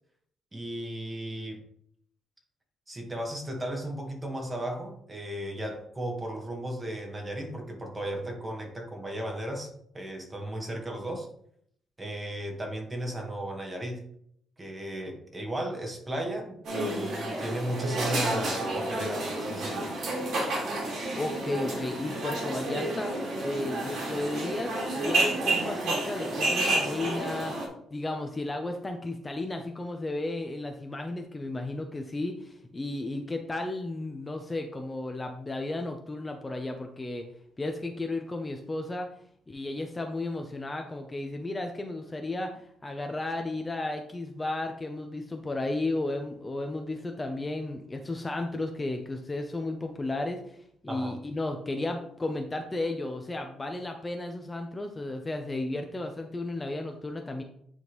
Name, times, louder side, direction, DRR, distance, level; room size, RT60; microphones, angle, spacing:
voice 1, 0.5-1.6 2.9-11.3 12.0-14.0 14.6-19.9 50.9-51.1, right 1 dB, 20° right, 2 dB, 1.6 m, -35 dB
sound 1, 16.6-27.7, right 2 dB, 65° right, 2.1 m, -30 dB
voice 2, 21.1-23.1 23.4-27.5 27.9-37.3 37.6-39.1 39.5-50.6 50.8-57.4, left 2 dB, 20° left, 4 dB, 0.7 m, -34 dB
9.4 x 3.6 x 3.1 m, 0.70 s
cardioid pair, 90°, 0 cm